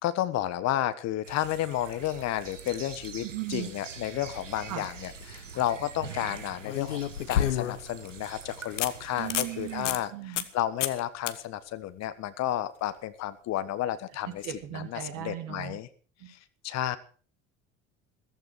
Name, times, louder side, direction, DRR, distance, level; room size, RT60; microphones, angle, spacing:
voice 1, 0.0-14.5 14.7-15.9 16.3-16.4 16.6-17.0, left 13 dB, 45° left, 13 dB, 1.3 m, -32 dB
sound 1, 1.2-10.0, right 6 dB, 85° right, 1.4 m, -44 dB
voice 2, 3.2-3.7 4.7-4.9 9.2-10.5 14.4-15.8 16.2-16.3, right 13 dB, 55° right, 6 dB, 2.8 m, -37 dB
sound 2, 5.1-5.2 6.6-7.9 8.4-8.5 8.8-8.9 9.2-9.5 9.9-10.0 10.4-10.5 10.8-11.0 11.3-11.4 14.5-14.6, left 11 dB, 75° left, 1.2 m, -29 dB
14.5 x 14.5 x 4.8 m, 0.40 s
figure-of-eight pair, 70°, 37 cm